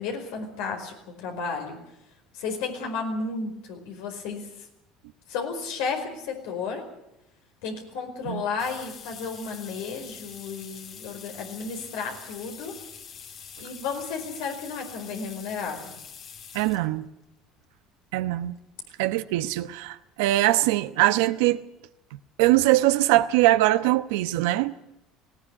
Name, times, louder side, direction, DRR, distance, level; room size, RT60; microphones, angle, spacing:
voice 1, 0.0-1.8 2.3-4.5 5.3-6.8 7.6-12.8 13.6-16.0, left 5 dB, 80° left, 3 dB, 4.8 m, -33 dB
sound 1, 8.6-16.9 17.7-17.8 19.1-19.2 19.5-19.6 19.9-20.0, left 7 dB, 50° left, 3.0 m, -44 dB
voice 2, 16.5-17.1 18.1-18.5 19.0-21.6 22.4-24.7, right 16 dB, 85° right, 10 dB, 0.9 m, -22 dB
19.5 x 16.5 x 9.8 m, 0.86 s
supercardioid pair, 100°, 0 cm